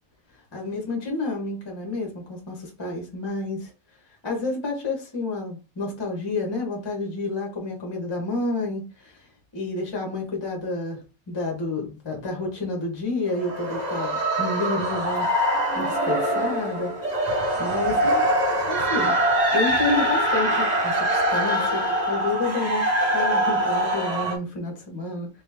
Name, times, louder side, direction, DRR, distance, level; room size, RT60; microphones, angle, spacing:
voice 1, 0.5-3.7 4.2-9.2 9.5-17.2 17.6-18.3 18.5-19.2 19.5-25.3, left 2 dB, 25° left, 0.5 m, -30 dB
sound 1, 13.3-24.4, right 1 dB, 55° right, 0.4 m, -23 dB
3.2 x 2.8 x 3.4 m
omnidirectional pair, 2.4 m